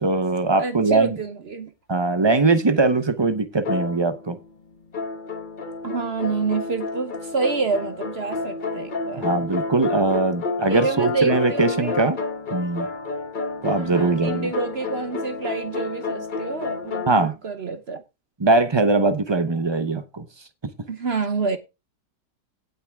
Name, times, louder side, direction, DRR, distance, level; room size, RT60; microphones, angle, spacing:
voice 1, 0.0-1.2 1.9-4.4 9.2-12.2 12.5-12.9 13.6-14.5 17.1-17.3 18.4-20.2, right 3 dB, 30° right, 0.5 m, -21 dB
voice 2, 0.6-1.7 5.8-9.3 10.6-12.0 13.7-18.0 20.9-21.6, right 4 dB, 45° right, 0.9 m, -28 dB
sound 1, 3.7-4.5 4.9-17.1, left 4 dB, 35° left, 1.0 m, -30 dB
17.0 x 5.7 x 3.5 m
omnidirectional pair, 1.8 m